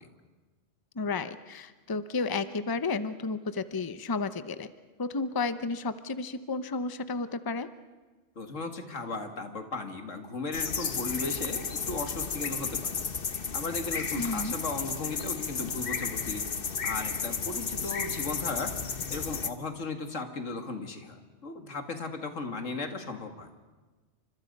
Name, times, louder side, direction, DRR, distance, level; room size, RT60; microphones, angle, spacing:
voice 1, 0.9-4.7 5.0-7.7 14.2-14.5, left 3 dB, 20° left, 12 dB, 0.7 m, -32 dB
voice 2, 8.4-12.9 13.5-16.4 16.8-18.7 19.1-23.5, left 3 dB, 90° left, 6 dB, 2.3 m, -36 dB
sound 1, 10.5-19.5, left 6 dB, 50° left, 1.3 m, -33 dB
29.0 x 25.5 x 5.4 m, 1.3 s
omnidirectional pair, 1.3 m